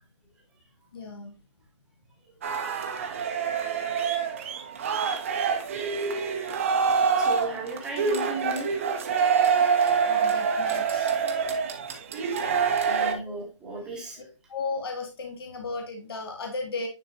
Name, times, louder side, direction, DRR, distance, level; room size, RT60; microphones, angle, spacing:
voice 1, 0.9-1.3 4.5-4.7 6.7-6.8 10.0-11.2 12.4-13.3 13.8-14.0 14.5-16.9, left 3 dB, 50° left, 3 dB, 1.3 m, -36 dB
sound 1, 2.4-13.1, right 6 dB, 25° right, 0.7 m, -26 dB
voice 2, 3.7-4.2 5.8-6.5 7.2-8.7 12.8-14.3, right 2 dB, 5° right, -2 dB, 1.1 m, -36 dB
9.6 x 4.0 x 2.7 m, 0.31 s
hypercardioid pair, 160°, 16 cm